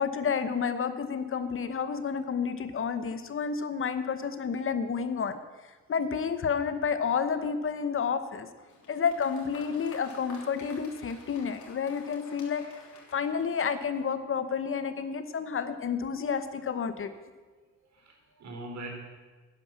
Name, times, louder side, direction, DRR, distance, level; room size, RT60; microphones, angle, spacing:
voice 1, 0.0-5.4 5.9-8.5 8.9-12.6 13.1-17.1, left 6 dB, 45° left, 11 dB, 1.1 m, -30 dB
Applause, 8.6-14.1, left 4 dB, 75° left, 3.3 m, -51 dB
voice 2, 8.7-9.0 17.1-17.2 17.7-18.9, right 2 dB, 65° right, 1 dB, 3.9 m, -44 dB
11.5 x 10.0 x 7.4 m, 1.3 s
cardioid pair, 90°, 30 cm